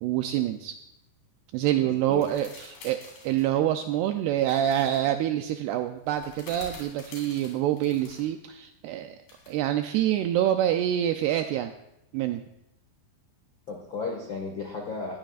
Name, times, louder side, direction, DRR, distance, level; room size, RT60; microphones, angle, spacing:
voice 1, 0.0-0.7 1.5-3.0 3.2-9.2 9.5-11.7 12.1-12.4, right 12 dB, 85° right, 7 dB, 2.3 m, -26 dB
voice 2, 1.8-2.3 13.7-15.2, left 4 dB, 75° left, 0 dB, 1.1 m, -34 dB
sound 1, 2.1-3.5 4.4-5.0 6.0-8.2 9.3-9.6, left 3 dB, 55° left, 5.0 m, -48 dB
19.5 x 14.5 x 2.4 m, 0.86 s
omnidirectional pair, 5.2 m